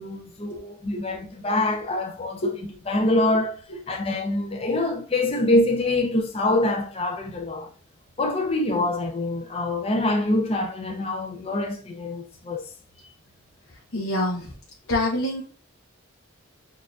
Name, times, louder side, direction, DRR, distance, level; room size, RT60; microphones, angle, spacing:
voice 1, 0.0-3.6 3.9-7.7 8.2-12.7 13.0-13.1, left 2 dB, 30° left, 0.5 m, -25 dB
voice 2, 13.7-14.5 14.9-15.4, left 1 dB, 75° left, 0.8 m, -27 dB
6.5 x 2.5 x 2.4 m
head